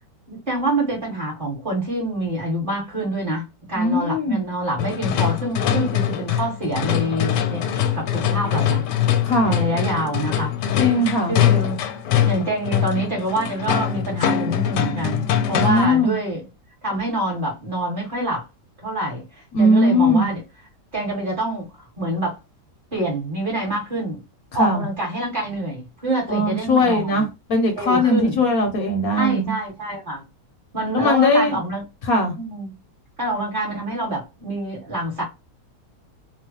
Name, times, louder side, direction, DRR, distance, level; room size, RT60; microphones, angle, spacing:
voice 1, 0.3-8.8 9.4-10.5 11.0-11.8 12.2-16.4 16.8-18.4 18.8-19.2 19.6-20.4 20.9-22.4 22.9-24.2 24.5-27.2 27.7-28.4 29.1-30.2 30.7-31.8 32.1-32.8 33.2-35.2, right 1 dB, 30° right, 1.4 m, -26 dB
voice 2, 3.7-4.4 9.2-9.6 10.8-11.4 15.6-16.2 19.5-20.3 24.6-24.9 26.3-29.5 30.9-31.6 32.1-32.4, left 1 dB, 65° left, 1.0 m, -19 dB
sound 1, 4.8-16.0, left 10 dB, 85° left, 1.2 m, -22 dB
3.0 x 2.2 x 2.8 m
omnidirectional pair, 1.8 m